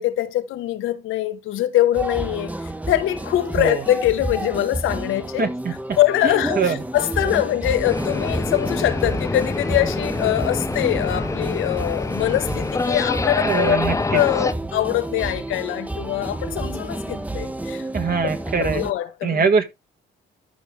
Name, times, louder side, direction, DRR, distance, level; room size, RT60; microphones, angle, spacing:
voice 1, 0.0-5.5 6.0-17.9 18.2-18.3 18.6-19.5, left 13 dB, 90° left, 1.2 m, -23 dB
sound 1, 1.9-18.9, right 2 dB, 5° right, 0.9 m, -30 dB
voice 2, 5.4-5.7 6.2-6.8 13.4-14.2 17.9-18.8 19.2-19.7, right 5 dB, 50° right, 1.7 m, -22 dB
sound 2, 7.8-14.5, left 3 dB, 15° left, 0.5 m, -26 dB
13.5 x 5.0 x 3.3 m
cardioid pair, 90°, 20 cm